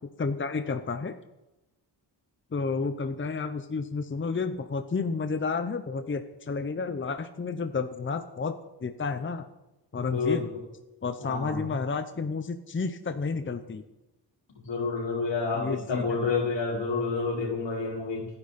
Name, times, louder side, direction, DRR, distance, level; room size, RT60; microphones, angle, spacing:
voice 1, 0.2-1.2 2.5-9.5 9.9-10.5 11.0-13.8 15.5-16.2, left 4 dB, 25° left, 9 dB, 0.8 m, -31 dB
voice 2, 9.9-10.6 11.2-11.7 14.6-18.3, left 4 dB, 80° left, -1 dB, 4.9 m, -29 dB
27.0 x 10.0 x 4.2 m, 0.99 s
wide cardioid pair, 130°, 43 cm